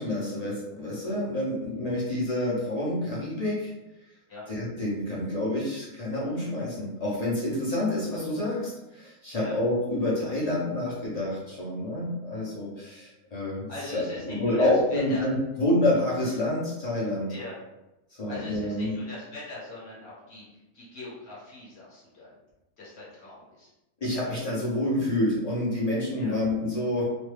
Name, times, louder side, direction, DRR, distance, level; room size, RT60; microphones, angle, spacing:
voice 1, 0.0-3.7 4.5-17.3 18.2-19.0 24.0-27.0, left 1 dB, 35° left, -7 dB, 0.7 m, -28 dB
voice 2, 13.7-15.3 17.3-17.7 18.3-22.3 22.8-23.7 26.2-26.4, left 2 dB, 50° left, -6 dB, 1.3 m, -41 dB
3.1 x 2.2 x 3.3 m, 0.96 s
omnidirectional pair, 1.5 m